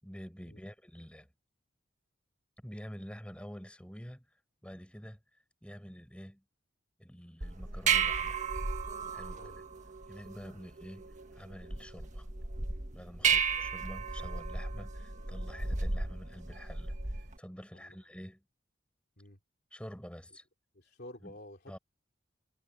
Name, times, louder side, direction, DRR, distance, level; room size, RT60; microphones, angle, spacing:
voice 1, 0.0-1.3 2.6-5.2 5.6-6.4 7.0-8.4 9.1-9.5 10.1-12.3 12.9-18.4 19.7-20.5 21.2-21.4 21.7-21.8, equal, 5° left, 7.3 m, -48 dB
sound 1, 7.4-17.4, right 5 dB, 40° right, 1.7 m, -34 dB
voice 2, 13.2-13.6 17.7-18.0 19.2-19.4 20.7-21.8, left 1 dB, 55° left, 3.3 m, -51 dB
head